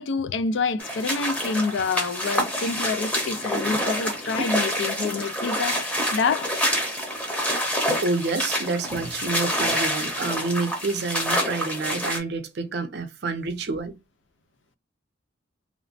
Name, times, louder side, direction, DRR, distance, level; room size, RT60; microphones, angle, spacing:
voice 1, 0.0-6.5, left 4 dB, 70° left, 0.4 m, -27 dB
sound 1, 0.8-12.2, equal, 10° left, 0.7 m, -27 dB
voice 2, 8.0-13.9, right 3 dB, 55° right, 0.5 m, -28 dB
3.0 x 2.0 x 2.5 m
head